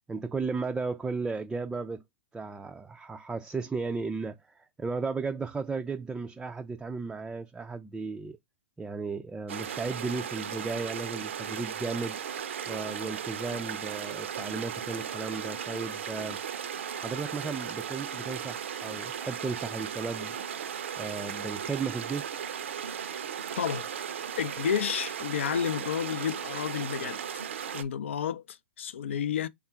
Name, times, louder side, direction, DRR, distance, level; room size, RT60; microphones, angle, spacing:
voice 1, 0.1-2.0 2.3-8.4 8.8-12.2 12.7-16.4 17.0-20.4 21.0-22.4, right 4 dB, 10° right, 0.3 m, -35 dB
sound 1, 9.5-27.8, right 8 dB, 70° right, 0.6 m, -36 dB
voice 2, 23.6-23.9 24.4-27.2 27.7-29.5, left 8 dB, 70° left, 0.4 m, -31 dB
3.5 x 2.4 x 4.3 m
hypercardioid pair, 115°, 7 cm